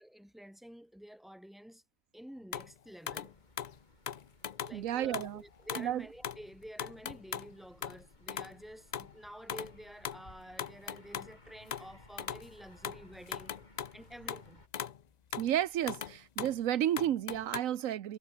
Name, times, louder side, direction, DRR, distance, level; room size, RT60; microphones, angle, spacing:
voice 1, 0.0-1.8 2.1-3.3 4.6-13.5 13.9-14.6, equal, ahead, 4.1 m, -50 dB
sound 1, 2.5-2.7 3.1-3.3 3.6-3.8 4.1-4.8 5.1-5.3 5.7-5.9 6.2-6.5 6.8-7.5 7.8-8.0 8.3-8.6 8.9-9.1 9.5-9.8 10.0-11.4 11.7-12.5 12.8-14.5 14.7-15.0 15.3-15.5 15.9-16.6 17.0-17.6, left 8 dB, 75° left, 0.4 m, -39 dB
sound 2, 3.1-14.7, left 1 dB, 30° left, 4.6 m, -60 dB
voice 2, 4.7-5.4 5.8-6.1 15.4-18.2, right 11 dB, 70° right, 1.2 m, -32 dB
omnidirectional pair, 1.5 m